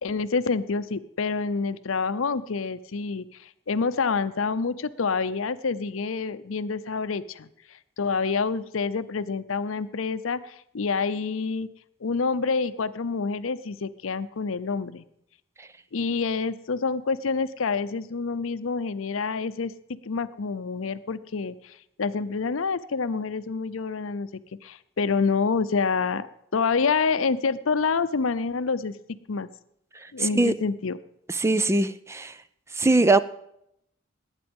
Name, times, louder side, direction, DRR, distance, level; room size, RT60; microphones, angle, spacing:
voice 1, 0.0-3.3 3.7-7.5 8.0-11.7 12.0-15.0 15.9-19.7 20.1-24.3 24.6-26.3 26.5-28.9 29.3-29.5 30.1-31.0, left 4 dB, 80° left, 14 dB, 0.6 m, -27 dB
voice 2, 30.2-30.5 31.3-32.3 32.8-33.2, right 2 dB, 15° right, 14 dB, 0.4 m, -21 dB
19.0 x 9.1 x 5.4 m, 0.76 s
head